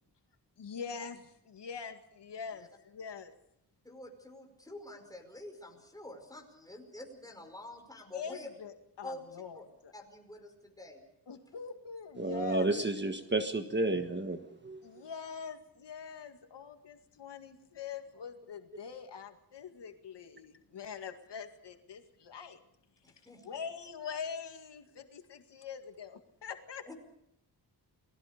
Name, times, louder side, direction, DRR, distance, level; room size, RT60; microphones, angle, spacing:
voice 1, 0.6-3.3 8.1-9.9 11.3-13.0 14.8-22.6 23.4-26.9, left 6 dB, 85° left, 6 dB, 2.1 m, -44 dB
voice 2, 3.8-8.5 9.0-9.2 9.6-9.7 9.9-11.0 23.0-23.7 26.9-27.0, left 2 dB, 10° left, 3 dB, 5.2 m, -47 dB
voice 3, 12.2-14.8, right 2 dB, 25° right, 7 dB, 1.5 m, -31 dB
29.5 x 19.5 x 5.2 m, 0.80 s
wide cardioid pair, 145°, 41 cm